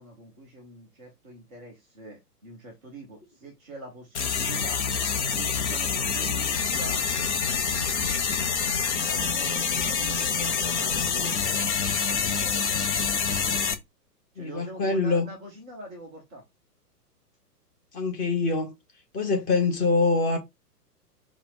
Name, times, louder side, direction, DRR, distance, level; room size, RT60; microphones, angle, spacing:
voice 1, 0.0-4.8 5.3-7.3 9.1-11.6 12.1-12.8 14.3-16.4, right 1 dB, 5° right, 0.4 m, -44 dB
sound 1, 4.1-13.7, left 6 dB, 45° left, 0.9 m, -26 dB
voice 2, 14.4-15.3 17.9-18.7 19.1-20.4, left 3 dB, 15° left, 1.2 m, -24 dB
4.6 x 2.4 x 4.0 m
figure-of-eight pair, 115°, 48 cm